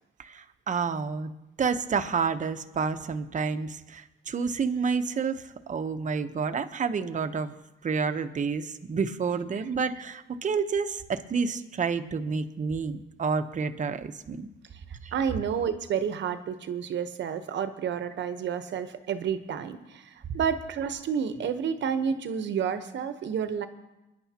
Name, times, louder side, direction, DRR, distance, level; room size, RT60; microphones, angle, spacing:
voice 1, 0.2-1.3 1.6-7.5 7.8-14.5 15.0-15.1, right 5 dB, 40° right, 9 dB, 0.9 m, -29 dB
voice 2, 15.1-23.7, right 7 dB, 65° right, 10 dB, 1.0 m, -30 dB
24.0 x 10.5 x 2.9 m, 1.0 s
cardioid pair, 90°, 20 cm